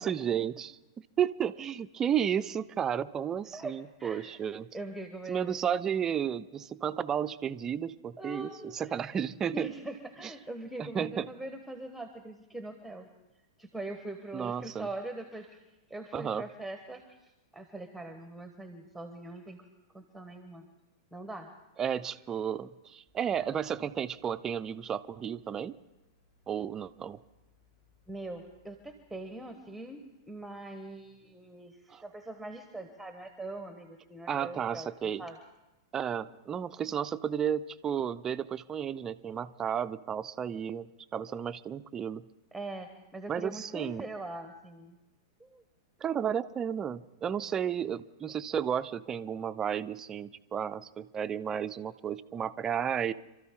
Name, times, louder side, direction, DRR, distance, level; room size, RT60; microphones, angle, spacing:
voice 1, 0.0-4.7 5.3-9.7 10.2-10.3 10.8-11.3 14.3-14.9 16.1-16.5 21.8-25.8 26.5-27.2 31.9-32.0 34.3-35.2 35.9-42.3 43.3-44.0 46.0-53.1, right 8 dB, 25° right, 12 dB, 0.6 m, -33 dB
voice 2, 3.5-4.4 4.7-5.6 8.2-9.1 9.5-13.1 13.6-19.7 19.9-20.7 21.1-21.5 28.1-30.0 30.3-35.4 42.5-45.0 45.4-45.6, right 2 dB, ahead, 7 dB, 1.2 m, -42 dB
sound 1, 23.1-31.3 31.7-31.8, right 1 dB, 35° left, 6.4 m, -69 dB
27.0 x 13.0 x 3.7 m, 1.0 s
hypercardioid pair, 110°, 2 cm